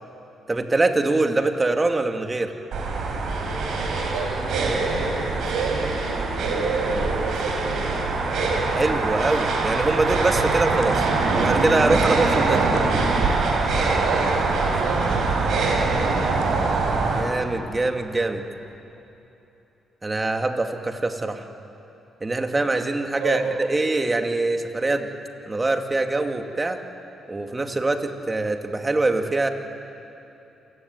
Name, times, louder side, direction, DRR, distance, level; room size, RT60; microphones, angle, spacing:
voice 1, 0.5-2.5 8.7-12.6 17.1-18.4 20.0-21.5 22.2-25.1 25.5-26.8 27.3-29.5, right 2 dB, 25° right, 5 dB, 2.3 m, -23 dB
sound 1, 2.7-17.2, right 3 dB, 70° right, 4.9 m, -23 dB
voice 2, 4.0-8.0 12.4-13.0 14.0-15.5 23.2-23.4, right 5 dB, 85° right, 1 dB, 4.7 m, -30 dB
27.5 x 15.5 x 9.5 m, 2.9 s
supercardioid pair, 55°, 0 cm